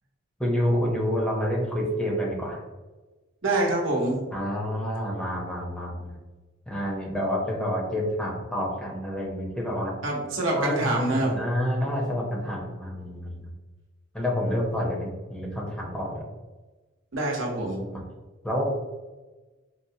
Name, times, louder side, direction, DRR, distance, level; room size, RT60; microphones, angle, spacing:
voice 1, 0.4-2.6 4.3-6.1 6.7-9.9 10.6-13.5 14.1-16.2 17.9-18.0 18.4-18.6, equal, 5° left, -4 dB, 0.7 m, -28 dB
voice 2, 3.4-4.2 10.0-11.4 17.1-17.8, right 2 dB, 80° right, -2 dB, 0.8 m, -25 dB
4.2 x 2.1 x 2.7 m, 1.2 s
head